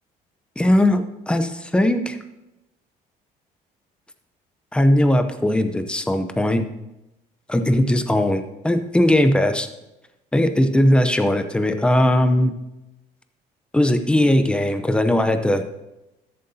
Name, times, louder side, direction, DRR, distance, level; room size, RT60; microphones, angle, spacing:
voice 1, 0.6-2.1 4.7-6.6 7.5-9.7 10.3-12.5 13.7-15.6, left 1 dB, 5° left, 8 dB, 0.7 m, -19 dB
13.5 x 7.7 x 2.8 m, 0.96 s
cardioid pair, 110°, 17 cm